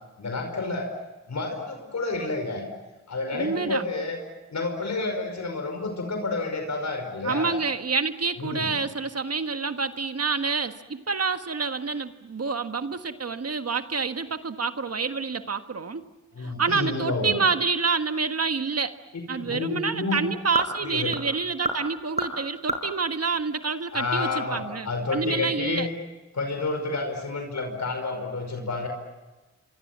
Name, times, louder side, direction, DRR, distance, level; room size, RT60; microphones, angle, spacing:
voice 1, 0.2-0.9 1.3-2.6 3.1-4.2 4.5-7.6 8.4-8.7 16.3-17.3 19.4-20.2 20.8-21.1 23.9-25.9 26.3-28.9, left 3 dB, 70° left, 5 dB, 5.3 m, -29 dB
voice 2, 3.3-3.8 7.2-16.0 16.4-19.0 19.3-25.9, right 4 dB, 55° right, 8 dB, 1.5 m, -28 dB
sound 1, 18.4-24.3, right 1 dB, 25° right, 6.4 m, -35 dB
27.5 x 25.0 x 7.5 m, 1.1 s
cardioid pair, 50°, 29 cm